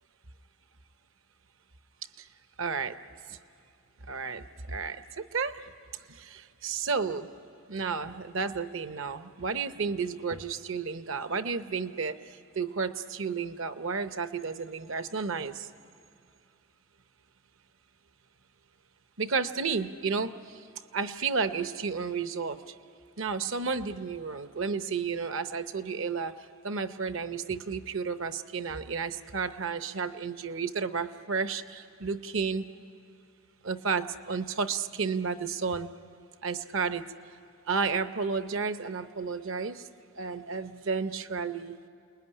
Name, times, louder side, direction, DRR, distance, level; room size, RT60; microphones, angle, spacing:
voice 1, 2.6-3.0 3.3-3.4 4.1-5.6 6.1-7.3 7.7-12.2 12.5-15.7 19.2-20.6 20.9-22.7 23.2-32.7 33.6-35.9 36.4-37.1 37.7-39.9 40.2-41.9, right 5 dB, 60° right, 11 dB, 0.8 m, -32 dB
29.0 x 20.5 x 9.8 m, 2.4 s
head